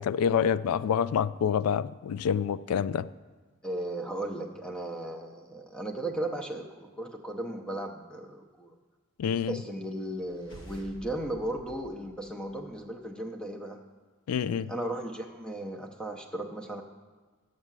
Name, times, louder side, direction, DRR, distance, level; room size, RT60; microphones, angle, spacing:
voice 1, 0.0-3.1 9.2-9.6 14.3-14.7, left 7 dB, 90° left, 0.3 m, -27 dB
voice 2, 3.6-8.7 9.5-13.8 14.7-16.8, right 1 dB, 5° left, 0.6 m, -36 dB
sound 1, 10.2-12.9, right 1 dB, 60° left, 1.4 m, -51 dB
8.1 x 6.5 x 7.4 m
head